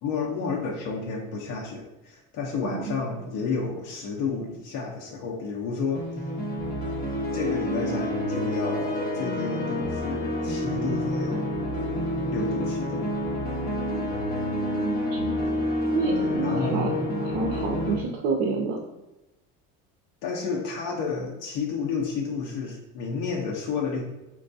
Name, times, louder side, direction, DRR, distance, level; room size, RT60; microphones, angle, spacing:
voice 1, 0.0-6.2 7.3-11.5 12.3-13.1 16.2-17.1 17.8-18.1 20.2-24.0, left 4 dB, 55° left, -1 dB, 0.6 m, -31 dB
voice 2, 2.6-3.0 14.8-15.5 15.9-16.9 17.2-18.8, right 4 dB, 60° right, -1 dB, 0.6 m, -29 dB
sound 1, 5.9-17.9, left 1 dB, 30° left, 0.9 m, -28 dB
5.8 x 2.2 x 2.6 m, 0.98 s
cardioid pair, 165°, 32 cm